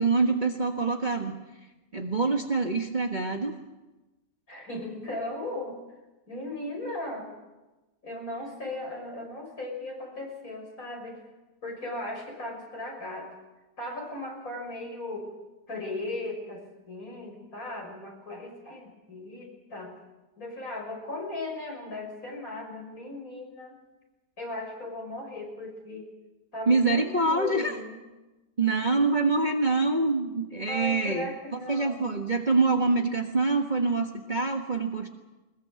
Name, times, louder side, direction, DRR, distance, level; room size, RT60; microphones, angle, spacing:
voice 1, 0.0-1.4 1.9-3.6 26.7-27.7 28.6-31.3 31.7-35.1, right 3 dB, 30° right, 2 dB, 1.5 m, -25 dB
voice 2, 4.5-5.8 6.3-7.3 8.0-11.2 11.6-13.3 13.8-15.3 15.7-19.9 20.4-23.8 24.4-26.1 26.5-28.0 30.7-32.2, left 1 dB, 50° left, 1 dB, 6.6 m, -37 dB
22.0 x 21.0 x 7.7 m, 1.1 s
omnidirectional pair, 1.9 m